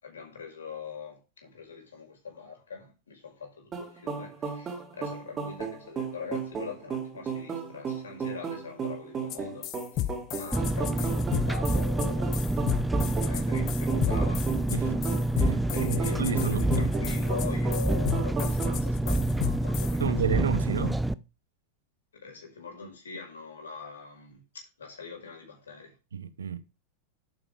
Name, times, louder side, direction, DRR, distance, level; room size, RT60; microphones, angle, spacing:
voice 1, 0.0-9.7 9.9-14.5 15.7-21.0 22.2-25.9, left 5 dB, 70° left, 5.6 m, -42 dB
sound 1, 3.7-18.8, right 6 dB, 25° right, 3.9 m, -35 dB
sound 2, 9.3-9.4 9.6-20.0, left 13 dB, 40° left, 1.1 m, -33 dB
Engine, 10.5-21.1, right 1 dB, 5° right, 0.6 m, -27 dB
voice 2, 15.3-16.8 20.0-21.0 26.1-26.6, right 7 dB, 70° right, 1.1 m, -31 dB
11.0 x 9.1 x 3.6 m
figure-of-eight pair, 90°, 0 cm